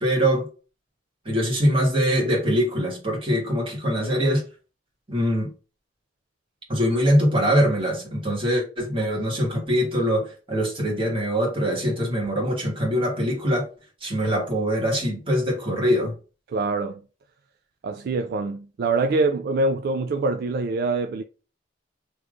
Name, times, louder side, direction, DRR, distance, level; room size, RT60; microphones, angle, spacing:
voice 1, 0.0-0.5 1.3-4.4 5.1-5.5 6.7-13.7 14.0-16.1, equal, 30° right, 1.6 m, -23 dB
voice 2, 16.5-17.0 17.8-21.2, right 3 dB, 55° right, 0.3 m, -24 dB
3.4 x 3.0 x 2.5 m
head